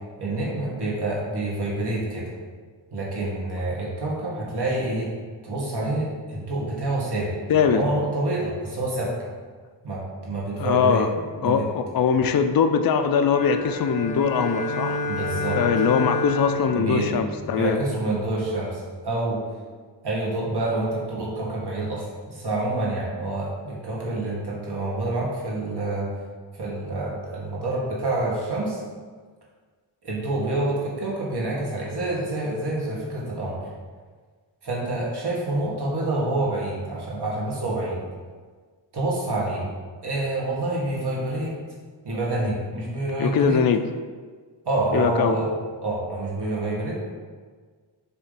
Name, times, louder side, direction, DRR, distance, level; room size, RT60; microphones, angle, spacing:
voice 1, 0.2-2.3 2.9-5.1 5.4-9.3 9.8-11.0 11.4-11.6 15.1-15.6 16.7-19.4 20.0-26.1 26.6-28.8 30.0-33.6 34.6-38.0 38.9-39.7 40.0-41.5 42.0-43.6 44.7-45.5 45.8-47.0, right 2 dB, 60° right, -4 dB, 1.9 m, -27 dB
voice 2, 7.5-7.9 10.6-15.0 15.5-17.8 43.2-43.9 44.9-45.3, left 6 dB, 50° left, 8 dB, 0.5 m, -22 dB
sound 1, 13.2-17.9, left 1 dB, 15° left, 1.3 m, -29 dB
6.9 x 3.4 x 5.7 m, 1.5 s
wide cardioid pair, 120°, 45 cm